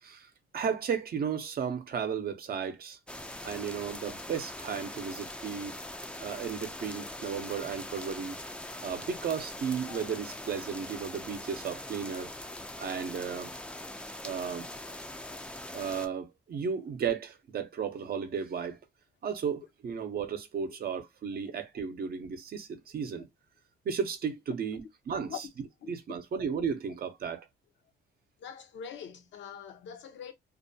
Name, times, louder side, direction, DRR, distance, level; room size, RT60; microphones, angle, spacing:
voice 1, 0.0-3.0 3.4-5.8 6.2-8.4 8.8-12.3 12.8-13.5 14.2-14.7 15.7-18.8 19.2-23.3 23.8-25.4 25.9-27.5, right 6 dB, 50° right, 0.6 m, -34 dB
sound 1, 3.1-16.1, left 1 dB, 5° left, 0.4 m, -42 dB
voice 2, 28.4-30.3, left 8 dB, 70° left, 0.7 m, -43 dB
2.4 x 2.2 x 2.6 m
cardioid pair, 90°, 20 cm